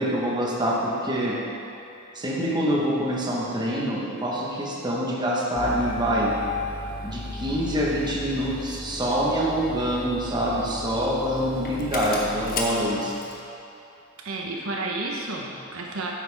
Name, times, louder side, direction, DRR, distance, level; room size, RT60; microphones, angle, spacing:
voice 1, 0.0-1.4 2.1-6.3 7.0-13.1, equal, 20° right, -4 dB, 1.2 m, -25 dB
Engine starting, 5.5-13.4, left 2 dB, 45° left, 1.1 m, -34 dB
voice 2, 14.2-16.1, right 2 dB, 75° right, -1 dB, 1.1 m, -31 dB
9.8 x 8.4 x 3.6 m, 2.8 s
head